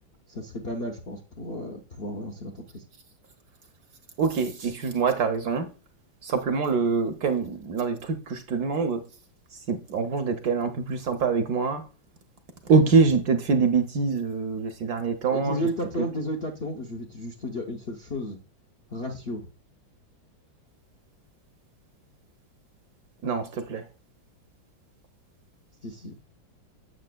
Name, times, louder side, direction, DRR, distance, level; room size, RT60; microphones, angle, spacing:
voice 1, 0.3-2.8 15.3-18.4 18.9-19.5 25.8-26.3, left 1 dB, 55° left, 0.7 m, -33 dB
voice 2, 4.2-5.7 6.2-9.0 9.5-11.9 12.6-15.6 16.0-16.1 23.2-23.9, right 5 dB, 65° right, 1.0 m, -24 dB
7.5 x 6.7 x 2.2 m
omnidirectional pair, 2.1 m